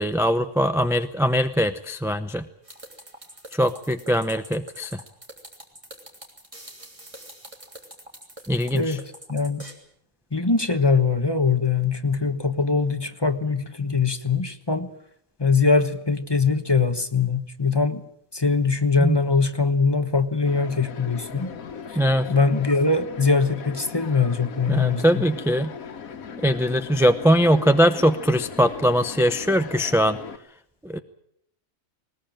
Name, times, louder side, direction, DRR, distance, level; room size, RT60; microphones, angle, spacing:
voice 1, 0.0-2.4 3.5-5.0 8.5-9.0 19.0-19.2 22.0-22.3 24.7-25.7 26.4-30.2 30.8-31.0, equal, 5° right, 8 dB, 0.5 m, -21 dB
sound 1, 2.6-9.7, right 1 dB, 25° right, 3.4 m, -44 dB
voice 2, 8.7-9.6 10.3-14.9 15.4-18.0 18.3-21.5 22.3-25.3, left 4 dB, 20° left, 8 dB, 1.2 m, -22 dB
sound 2, 20.4-30.4, left 6 dB, 85° left, 1.7 m, -38 dB
20.5 x 20.0 x 8.9 m, 0.72 s
omnidirectional pair, 1.4 m